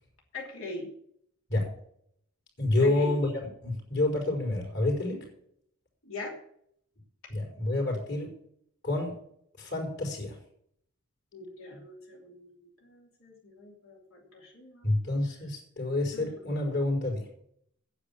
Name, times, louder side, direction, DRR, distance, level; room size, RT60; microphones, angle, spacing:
voice 1, 0.3-0.9 2.8-3.1 6.0-6.4 11.3-15.0 16.1-16.3, left 2 dB, 75° left, -1 dB, 3.0 m, -42 dB
voice 2, 2.6-3.3 3.6-5.3 7.3-8.3 8.8-9.1 9.6-10.4 14.8-17.2, left 2 dB, 50° left, 0 dB, 4.4 m, -28 dB
9.7 x 7.0 x 8.5 m, 0.68 s
head